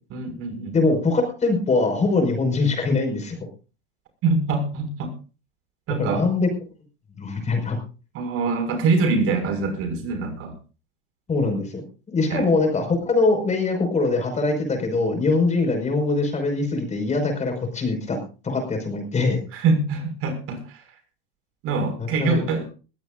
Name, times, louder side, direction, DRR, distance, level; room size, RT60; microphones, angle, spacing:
voice 1, 0.1-0.8 4.2-5.1 5.9-6.3 8.1-10.5 12.3-12.5 19.5-20.8 21.6-22.7, right 3 dB, 45° right, 6 dB, 6.1 m, -24 dB
voice 2, 0.7-3.5 6.0-6.5 7.2-7.8 11.3-11.7 12.1-18.2 18.4-19.4 22.0-22.4, left 3 dB, 20° left, 5 dB, 5.5 m, -22 dB
21.0 x 16.5 x 2.6 m, 0.35 s
hypercardioid pair, 100°, 31 cm